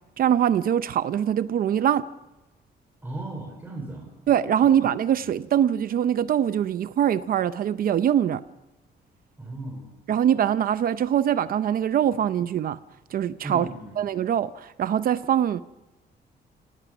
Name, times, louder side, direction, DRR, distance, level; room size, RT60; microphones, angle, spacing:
voice 1, 0.2-2.1 4.3-8.4 10.1-12.8 13.1-13.7 14.0-15.6, right 9 dB, 55° right, 0.6 m, -23 dB
voice 2, 3.0-4.1 4.6-4.8 9.4-9.9 13.4-14.0, right 2 dB, 10° right, 3.8 m, -36 dB
28.0 x 18.0 x 6.1 m
cardioid pair, 155°, 18 cm